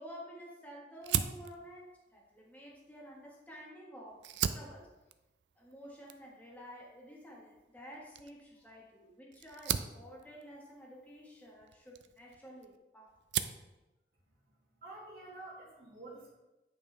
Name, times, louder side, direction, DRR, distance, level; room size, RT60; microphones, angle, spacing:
voice 1, 0.0-4.9 5.6-13.1, equal, 10° left, -4 dB, 1.4 m, -51 dB
Fire, 1.0-3.7 4.1-12.8 13.1-13.7, right 9 dB, 80° right, 0.4 m, -39 dB
voice 2, 14.8-16.3, right 2 dB, 55° right, -7 dB, 1.9 m, -49 dB
8.6 x 5.3 x 3.3 m, 1.0 s
head